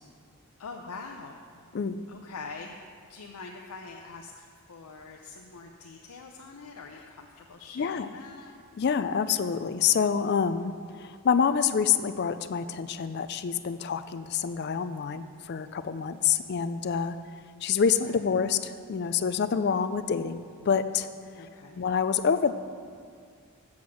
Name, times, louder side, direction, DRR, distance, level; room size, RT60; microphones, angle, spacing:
voice 1, 0.6-1.6 2.1-2.8 3.1-8.5 18.1-18.4 21.4-21.8, left 4 dB, 85° left, 1 dB, 0.6 m, -44 dB
voice 2, 7.8-8.1 8.8-17.2 17.6-21.1 21.8-22.5, left 6 dB, 50° left, 12 dB, 0.4 m, -27 dB
7.8 x 7.2 x 6.2 m, 2.2 s
head